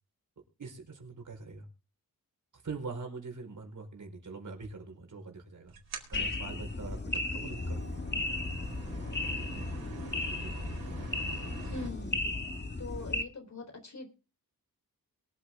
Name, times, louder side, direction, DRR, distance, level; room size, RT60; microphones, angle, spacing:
voice 1, 0.6-1.7 2.5-5.7 6.1-8.0 10.3-10.5, right 4 dB, 55° right, 4 dB, 4.7 m, -43 dB
sound 1, 5.7-11.9, right 5 dB, 85° right, 4.3 m, -46 dB
sound 2, 6.1-13.2, left 2 dB, 30° left, 1.7 m, -35 dB
voice 2, 11.6-12.2 12.8-14.1, left 3 dB, 50° left, 6 dB, 4.0 m, -42 dB
23.0 x 8.4 x 3.7 m, 0.33 s
wide cardioid pair, 105°, 36 cm